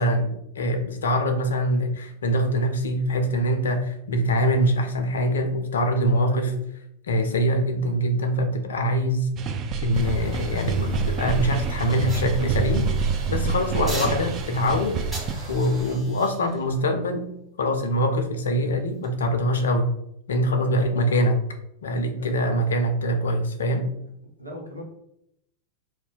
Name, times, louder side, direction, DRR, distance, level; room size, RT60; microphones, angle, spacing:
voice 1, 0.0-6.5 7.1-9.3 9.8-12.9 13.3-15.0 15.5-17.3 17.6-19.9 20.3-21.4 21.8-23.9, equal, 65° left, 6 dB, 0.5 m, -24 dB
voice 2, 2.3-2.6 6.2-6.6 8.1-8.2 13.5-14.0 20.4-21.0 22.2-22.7 24.4-24.8, equal, 85° right, 0 dB, 0.7 m, -38 dB
sound 1, 9.4-15.3, right 5 dB, 35° right, 0.3 m, -27 dB
sound 2, 9.9-16.0, right 3 dB, 55° right, 1.2 m, -38 dB
sound 3, 12.1-13.1 13.9-14.7 15.1-18.3 18.9-19.1, right 1 dB, 10° right, 1.4 m, -40 dB
2.5 x 2.1 x 3.7 m, 0.78 s
figure-of-eight pair, 90°, 0 cm